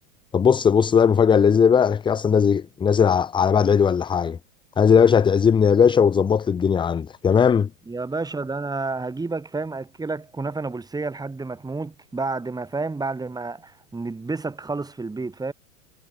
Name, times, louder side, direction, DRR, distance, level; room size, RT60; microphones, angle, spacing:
voice 1, 0.3-4.4 4.8-7.7, left 7 dB, 10° left, 0.7 m, -18 dB
voice 2, 7.9-15.5, right 3 dB, 10° right, 5.4 m, -30 dB
supercardioid pair, 130°, 41 cm